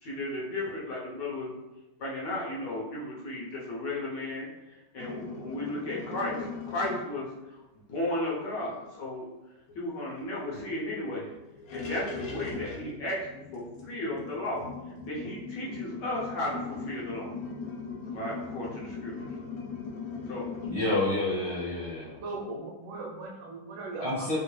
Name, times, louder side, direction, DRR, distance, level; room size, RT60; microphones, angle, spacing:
voice 1, 0.0-1.6 2.0-9.3 9.7-11.3 11.7-14.6 15.0-17.3 18.1-19.3 20.3-20.9, left 1 dB, 70° left, -5 dB, 1.3 m, -35 dB
sound 1, 5.0-7.1 9.7-9.8 10.1-10.2 10.6-10.7 11.5-20.7, left 4 dB, 85° left, 0.7 m, -39 dB
voice 2, 20.6-22.2 24.0-24.4, left 2 dB, 25° right, -9 dB, 0.6 m, -29 dB
voice 3, 22.2-24.3, right 2 dB, 75° right, -1 dB, 1.2 m, -38 dB
3.5 x 2.5 x 3.1 m, 1.0 s
omnidirectional pair, 2.2 m